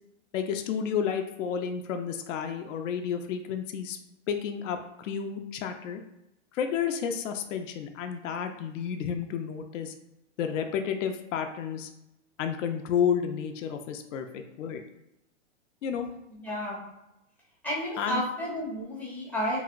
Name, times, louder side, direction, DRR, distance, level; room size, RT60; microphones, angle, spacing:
voice 1, 0.3-4.0 4.3-6.0 6.5-9.9 10.4-11.9 12.4-14.8 15.8-16.1 18.0-18.2, left 7 dB, 75° left, 6 dB, 0.5 m, -31 dB
voice 2, 16.3-16.8 17.6-19.6, equal, 5° left, -6 dB, 0.4 m, -31 dB
2.9 x 2.7 x 2.4 m, 0.87 s
hypercardioid pair, 130°, 38 cm